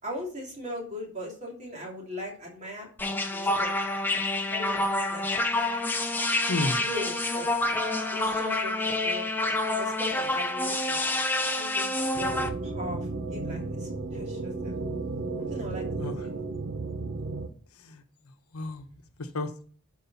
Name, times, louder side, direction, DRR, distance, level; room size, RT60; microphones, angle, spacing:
voice 1, 0.0-2.9 3.2-3.7 4.5-5.3 6.8-7.5 8.1-9.3 9.7-11.0 11.5-14.8 15.4-15.8 16.2-16.3, left 1 dB, 30° right, -2 dB, 2.8 m, -39 dB
sound 1, 3.0-12.5, left 2 dB, 10° left, 0.6 m, -28 dB
voice 2, 6.5-6.8 11.9-12.1 15.9-16.3 17.7-18.9 19.2-19.6, left 2 dB, 85° left, 8 dB, 1.0 m, -33 dB
sound 2, 12.1-17.5, right 3 dB, 60° right, 0.9 m, -33 dB
11.5 x 4.8 x 4.1 m, 0.43 s
head